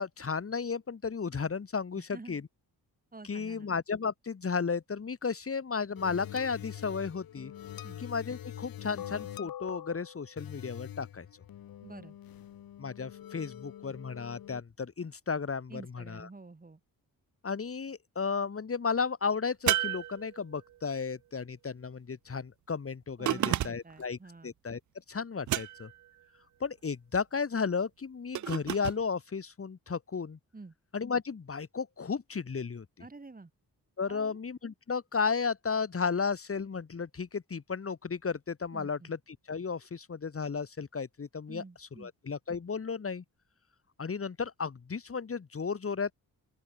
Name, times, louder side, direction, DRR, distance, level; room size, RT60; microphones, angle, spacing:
voice 1, 0.0-2.4 3.3-7.5 8.0-11.3 12.8-16.3 17.4-24.2 24.4-24.8 25.1-25.9 26.6-30.4 30.9-32.9 34.0-39.2 39.5-41.6 42.0-43.2 44.0-46.1, left 5 dB, 40° left, 3.4 m, -34 dB
voice 2, 1.9-2.4 3.1-3.7 7.8-8.0 11.8-12.2 15.7-16.8 23.2-24.5 30.5-30.7 33.0-33.5 34.1-34.4 38.7-39.1 41.5-42.1, right 3 dB, 25° right, 7.8 m, -48 dB
sound 1, 6.0-14.6, left 11 dB, 80° left, 2.2 m, -44 dB
sound 2, 19.7-20.8 23.3-24.0 25.5-26.1 28.3-29.0, right 13 dB, 55° right, 0.5 m, -31 dB
open air
cardioid pair, 95°, 35 cm